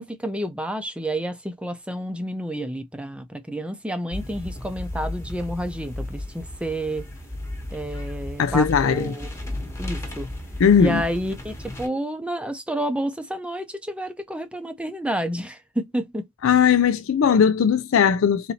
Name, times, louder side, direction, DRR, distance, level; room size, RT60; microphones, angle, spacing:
voice 1, 0.0-7.0 7.7-9.3 9.8-10.3 10.8-16.3, right 1 dB, 5° right, 0.6 m, -30 dB
sound 1, 4.1-11.9, left 1 dB, 15° left, 1.1 m, -34 dB
voice 2, 8.4-9.2 10.6-11.0 16.4-18.5, left 7 dB, 65° left, 0.4 m, -18 dB
4.1 x 2.7 x 4.2 m
head